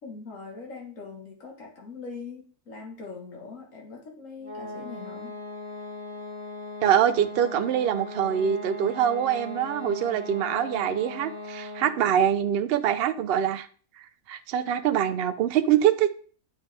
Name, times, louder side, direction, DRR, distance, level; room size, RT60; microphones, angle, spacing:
voice 1, 0.0-5.3, left 4 dB, 65° left, 1.9 m, -41 dB
sound 1, 4.4-12.1, left 2 dB, 85° left, 2.1 m, -39 dB
voice 2, 6.8-13.7 14.3-16.1, right 9 dB, 60° right, 0.7 m, -24 dB
8.4 x 4.8 x 3.3 m
omnidirectional pair, 1.4 m